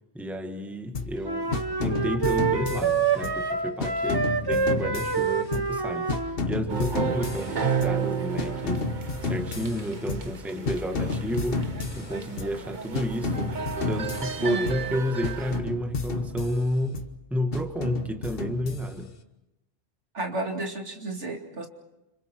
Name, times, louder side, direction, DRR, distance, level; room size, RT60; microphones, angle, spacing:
voice 1, 0.1-6.1 6.5-8.9 9.2-11.6 11.9-13.5 13.8-17.0 17.3-19.1, equal, ahead, 5 dB, 1.5 m, -31 dB
sound 1, 0.9-1.2 1.5-3.5 3.8-5.8 6.1-8.0 8.4-10.4 10.7-12.6 12.9-14.9 15.2-17.1 17.5-19.2, left 4 dB, 50° left, 1.4 m, -32 dB
sound 2, 1.2-6.4, right 5 dB, 20° right, 0.8 m, -27 dB
sound 3, 6.7-15.6, right 6 dB, 40° right, 1.3 m, -32 dB
voice 2, 14.4-15.0 20.1-21.7, right 2 dB, 70° right, 3 dB, 2.9 m, -32 dB
29.5 x 27.0 x 4.6 m, 0.97 s
omnidirectional pair, 1.2 m